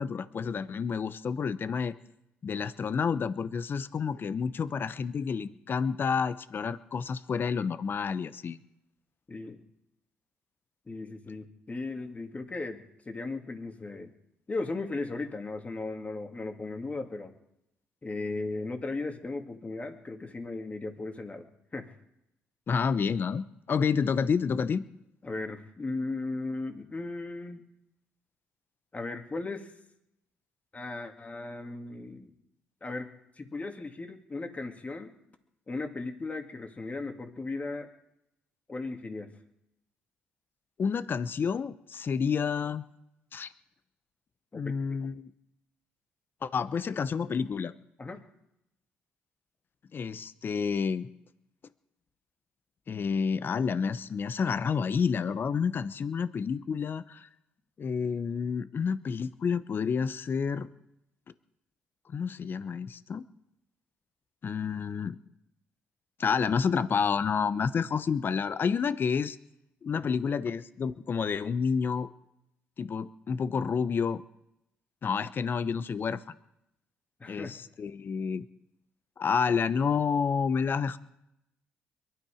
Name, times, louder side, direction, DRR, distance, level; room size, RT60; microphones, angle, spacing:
voice 1, 0.0-1.9 2.4-8.6 22.7-24.8 40.8-42.8 43.3-43.5 44.5-45.3 46.4-47.7 49.9-51.1 52.9-57.3 57.8-60.7 62.1-63.3 64.4-65.2 66.2-69.4 69.8-72.1 72.8-74.2 75.0-76.3 77.3-78.5 79.2-81.0, left 6 dB, 50° left, 14 dB, 0.8 m, -29 dB
voice 2, 9.3-9.6 10.9-14.1 14.5-17.3 18.0-21.5 21.7-21.9 25.2-27.6 28.9-29.7 30.7-32.3 32.8-33.1 33.4-35.1 35.7-37.9 38.7-39.3 44.5-44.6 48.0-48.2 69.9-70.1 77.2-77.5, left 3 dB, 30° left, 5 dB, 2.3 m, -36 dB
22.5 x 12.0 x 5.0 m, 0.83 s
supercardioid pair, 60°, 5 cm